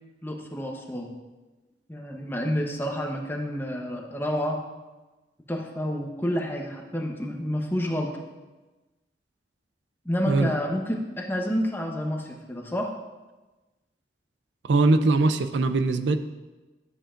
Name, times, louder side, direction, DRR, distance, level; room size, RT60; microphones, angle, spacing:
voice 1, 0.2-1.1 1.9-4.6 5.5-8.2 10.0-12.9, equal, 10° left, 1 dB, 0.9 m, -29 dB
voice 2, 14.6-16.2, right 3 dB, 85° right, 10 dB, 0.4 m, -21 dB
11.0 x 7.6 x 2.5 m, 1.2 s
head